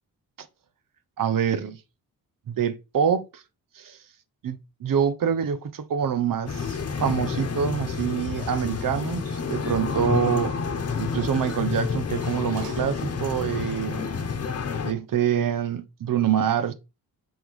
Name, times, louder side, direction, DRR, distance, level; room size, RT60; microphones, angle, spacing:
voice 1, 1.2-1.8 2.5-3.4 3.7-4.0 4.4-10.5 11.0-14.1 14.8-16.7, right 8 dB, 60° right, 0.9 m, -26 dB
sound 1, 6.5-14.9, left 5 dB, 40° left, 1.1 m, -29 dB
Sliding door, 9.4-13.6 14.0-14.1, right 4 dB, 80° right, 1.4 m, -49 dB
5.8 x 3.7 x 4.8 m
cardioid pair, 85°, 37 cm